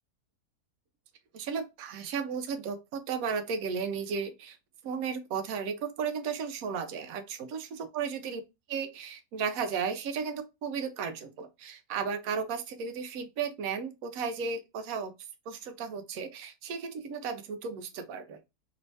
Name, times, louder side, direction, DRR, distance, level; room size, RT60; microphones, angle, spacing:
voice 1, 1.3-4.6 4.8-8.4 8.7-15.1 15.5-18.4, right 6 dB, 70° right, 1.1 m, -34 dB
3.2 x 3.1 x 2.7 m
omnidirectional pair, 1.6 m